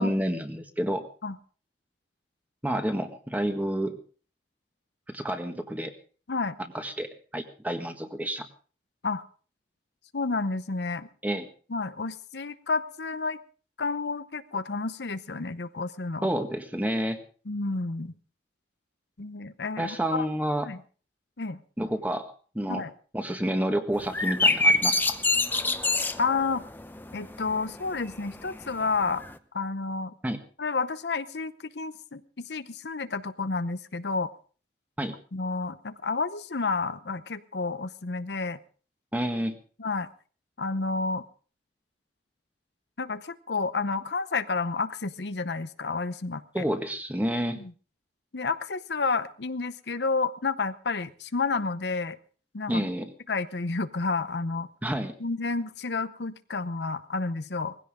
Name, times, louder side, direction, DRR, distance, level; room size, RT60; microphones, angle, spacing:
voice 1, 0.0-1.1 2.6-4.0 5.1-5.9 6.7-8.5 11.2-11.5 16.2-17.2 19.8-20.7 21.8-22.3 22.5-22.8 23.1-25.2 30.2-30.4 35.0-35.1 39.1-39.6 46.5-47.6 52.7-53.1 54.8-55.1, equal, 10° right, 6 dB, 1.6 m, -29 dB
voice 2, 10.1-11.1 11.7-13.4 13.8-16.3 17.5-18.1 19.2-20.2 20.6-20.8 21.4-21.6 22.7-22.9 26.2-26.6 27.1-29.2 29.5-30.1 30.6-34.3 35.3-38.6 39.8-40.1 40.6-41.2 43.0-46.6 47.6-47.7 48.3-52.2 52.5-52.9 53.3-54.7 55.2-57.8, left 4 dB, 70° left, 12 dB, 0.8 m, -30 dB
sound 1, 23.9-29.3, left 2 dB, 10° left, 0.8 m, -26 dB
19.5 x 16.0 x 3.7 m, 0.39 s
head